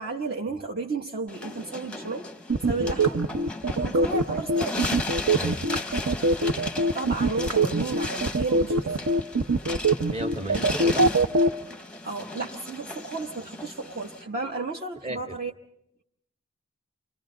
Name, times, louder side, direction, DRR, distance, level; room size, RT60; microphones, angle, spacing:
voice 1, 0.0-2.3 2.7-3.2 3.7-4.8 6.5-9.0 12.0-15.5, right 3 dB, 45° right, 0 dB, 1.1 m, -33 dB
sound 1, 1.3-14.2, left 2 dB, 5° left, 0.8 m, -36 dB
sound 2, 2.5-11.5, right 2 dB, 65° right, 0.8 m, -22 dB
sound 3, 3.0-3.3 3.9-4.1 4.8-5.0 5.7-6.0 6.6-6.7 7.5-7.7, right 1 dB, 80° right, 3.7 m, -38 dB
voice 2, 5.3-5.7 10.1-11.1 15.0-15.2, right 1 dB, 30° right, 4 dB, 1.8 m, -34 dB
29.5 x 25.5 x 3.8 m, 0.78 s
head